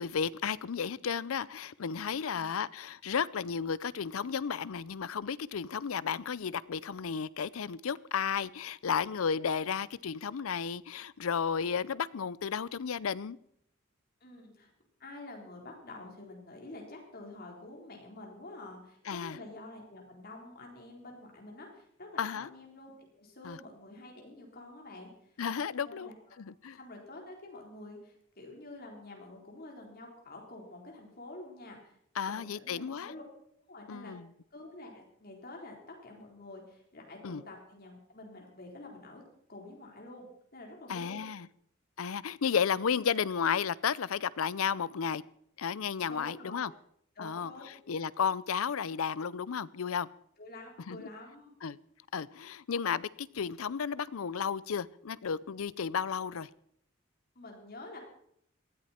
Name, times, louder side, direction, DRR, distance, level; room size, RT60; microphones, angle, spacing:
voice 1, 0.0-13.4 19.1-19.4 22.2-22.5 23.4-23.6 25.4-26.1 26.4-26.8 32.2-33.1 33.9-34.3 37.2-37.4 40.9-41.5 42.0-45.2 45.6-46.7 47.2-47.5 47.9-50.1 50.9-51.1 51.6-51.8 52.1-56.5, left 6 dB, 85° left, 0.5 m, -33 dB
voice 2, 14.2-14.7 15.0-25.3 25.8-26.4 26.8-32.0 32.3-33.2 33.7-34.1 34.5-39.2 39.5-40.3 40.5-41.2 46.1-46.6 47.2-47.7 50.4-51.5 57.4-58.0, left 2 dB, 45° left, 4.0 m, -48 dB
18.5 x 14.0 x 4.4 m
head